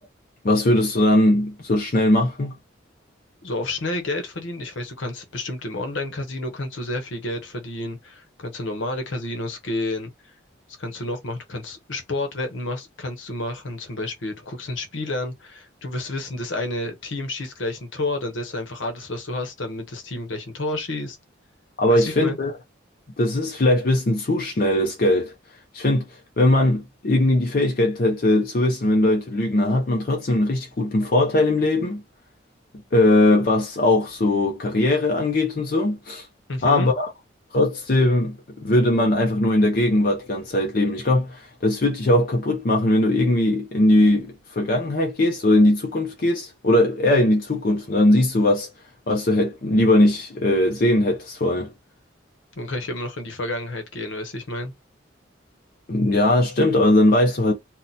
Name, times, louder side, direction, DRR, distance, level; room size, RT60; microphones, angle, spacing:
voice 1, 0.4-2.5 21.8-22.5 23.2-25.3 25.7-26.1 26.4-32.0 32.9-36.3 36.6-37.1 37.5-48.7 49.1-51.7 55.9-57.5, left 1 dB, 45° left, 0.5 m, -20 dB
voice 2, 3.4-10.1 10.8-21.2 21.9-22.4 36.5-36.9 52.6-54.7, left 2 dB, 75° left, 0.9 m, -30 dB
2.8 x 2.1 x 3.9 m
head